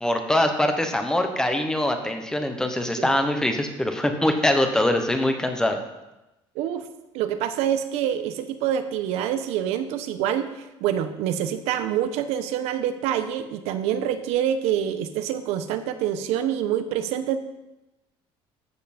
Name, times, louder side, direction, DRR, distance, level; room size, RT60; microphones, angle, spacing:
voice 1, 0.0-5.8, left 1 dB, 5° left, 5 dB, 1.1 m, -23 dB
voice 2, 6.5-6.9 7.1-17.4, right 10 dB, 85° right, 10 dB, 1.0 m, -26 dB
13.5 x 8.0 x 4.3 m, 0.98 s
cardioid pair, 160°, 11 cm